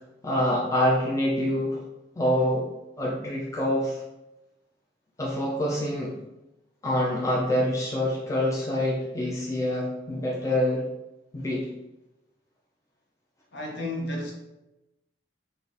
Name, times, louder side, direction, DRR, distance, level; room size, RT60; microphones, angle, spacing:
voice 1, 0.2-1.8 2.2-2.7 3.0-4.0 5.2-6.1 6.8-10.9 11.3-11.7, left 1 dB, 15° left, -4 dB, 0.5 m, -26 dB
voice 2, 13.5-14.3, left 1 dB, 65° left, -1 dB, 1.0 m, -32 dB
3.4 x 2.5 x 3.9 m, 0.94 s
head